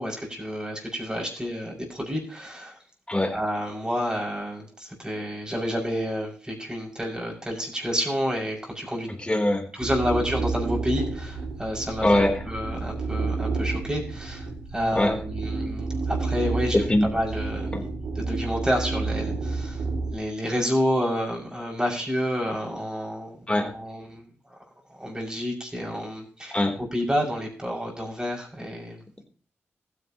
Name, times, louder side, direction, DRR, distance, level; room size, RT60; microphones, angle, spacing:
voice 1, 0.0-2.8 3.3-9.1 9.7-14.5 14.7-16.8 17.1-17.7 18.1-19.8 20.1-24.6 25.0-26.6 26.9-29.2, equal, 15° right, -1 dB, 6.4 m, -29 dB
voice 2, 9.2-9.7 12.0-12.4 14.9-15.2 16.7-17.1 17.7-17.9 23.5-23.7 26.5-26.8, left 1 dB, 20° left, 3 dB, 3.5 m, -22 dB
sound 1, 9.8-20.1, right 3 dB, 85° right, 2.3 m, -30 dB
15.0 x 10.0 x 3.0 m, 0.42 s
supercardioid pair, 45°, 5 cm